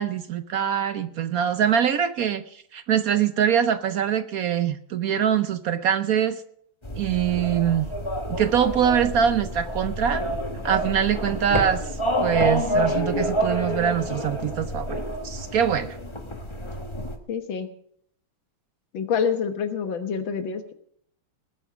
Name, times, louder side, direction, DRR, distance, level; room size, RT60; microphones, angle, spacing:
voice 1, 0.0-6.4 7.0-7.9 8.3-10.2 10.6-16.0, right 9 dB, 75° right, 11 dB, 0.8 m, -24 dB
sound 1, 6.8-17.2, equal, 20° left, 1.0 m, -28 dB
voice 2, 17.3-17.7 18.9-20.7, left 6 dB, 65° left, 8 dB, 2.1 m, -27 dB
19.5 x 8.8 x 6.2 m, 0.67 s
omnidirectional pair, 2.3 m